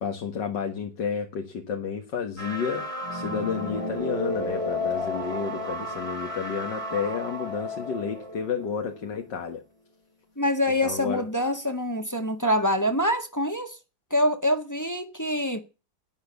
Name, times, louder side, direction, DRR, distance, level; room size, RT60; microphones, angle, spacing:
voice 1, 0.0-9.6 10.8-11.2, left 6 dB, 75° left, 2.3 m, -31 dB
sound 1, 2.4-9.2, left 1 dB, 20° right, 2.1 m, -32 dB
voice 2, 10.4-13.8 14.1-15.6, left 1 dB, 10° left, 1.4 m, -25 dB
12.5 x 10.5 x 7.0 m
omnidirectional pair, 1.9 m